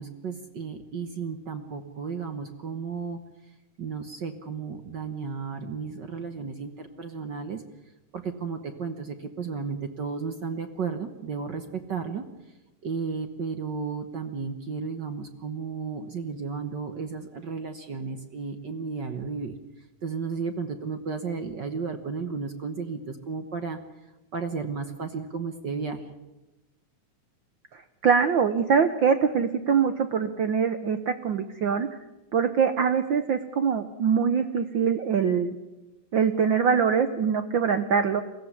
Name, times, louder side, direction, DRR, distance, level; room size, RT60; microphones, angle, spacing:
voice 1, 0.0-3.2 3.8-7.6 8.1-12.2 12.8-19.5 20.0-23.8 24.3-26.1, right 5 dB, 55° right, 7 dB, 1.2 m, -33 dB
voice 2, 27.7-31.9 32.3-35.6 36.1-38.2, right 6 dB, 85° right, 10 dB, 1.0 m, -23 dB
22.5 x 16.5 x 9.7 m, 1.0 s
omnidirectional pair, 3.5 m